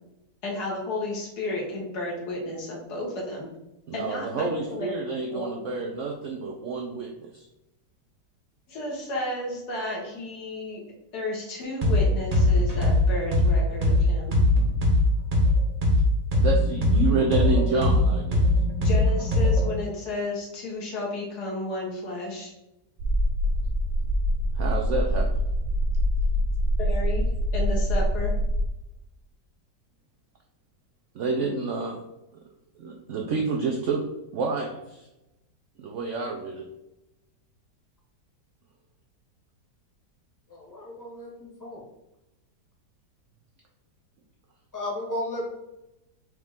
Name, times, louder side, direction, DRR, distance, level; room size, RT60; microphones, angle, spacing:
voice 1, 0.4-3.5 3.9-5.0 5.3-5.5 8.7-10.8 11.1-14.4 18.8-22.5 26.8-27.2 27.5-28.4, left 2 dB, 65° left, -2 dB, 1.7 m, -32 dB
voice 2, 3.9-7.5 16.4-18.5 24.6-25.3 31.1-32.0 32.3-32.4 32.8-34.0 34.3-35.1 35.8-36.7, right 4 dB, 80° right, 2 dB, 0.6 m, -29 dB
sound 1, 11.8-12.0 12.3-16.0 16.3-19.7, left 1 dB, 30° right, 0.7 m, -20 dB
sound 2, 23.0-28.7, equal, 65° right, 1.0 m, -24 dB
voice 3, 40.5-41.8 44.7-45.4, left 1 dB, 15° left, -3 dB, 1.0 m, -34 dB
4.8 x 3.1 x 3.5 m, 0.93 s
omnidirectional pair, 1.8 m